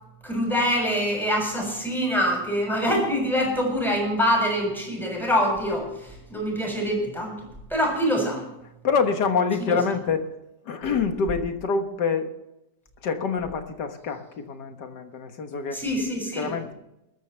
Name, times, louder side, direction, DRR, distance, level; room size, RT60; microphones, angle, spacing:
voice 1, 0.2-7.3 7.7-8.4 15.7-16.5, equal, ahead, -2 dB, 7.1 m, -25 dB
voice 2, 8.8-10.3 10.7-12.3 13.0-15.8 16.4-16.7, left 5 dB, 70° left, 7 dB, 2.0 m, -26 dB
21.5 x 13.5 x 3.4 m, 0.90 s
omnidirectional pair, 1.9 m